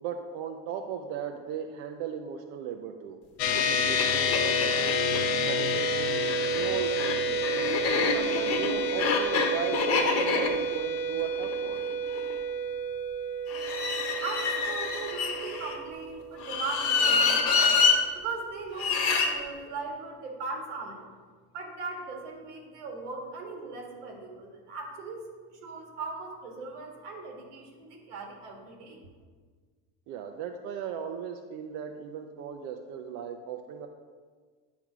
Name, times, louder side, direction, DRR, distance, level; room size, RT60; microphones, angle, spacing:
voice 1, 0.0-3.2 3.5-5.0 5.4-7.4 7.9-11.8 30.1-33.9, right 7 dB, 55° right, 4 dB, 0.6 m, -37 dB
sound 1, 3.4-17.0, equal, 60° left, 0.9 m, -30 dB
sound 2, 3.5-3.6 4.0-4.1 4.3-5.2 6.1-12.3 13.5-15.8 16.4-18.0 18.8-19.3, left 5 dB, 40° left, 1.1 m, -27 dB
voice 2, 13.8-17.8 18.1-21.0 21.5-25.2 25.5-29.0, right 3 dB, 85° right, 1 dB, 1.8 m, -39 dB
9.1 x 3.5 x 6.0 m, 1.5 s
supercardioid pair, 120°, 35 cm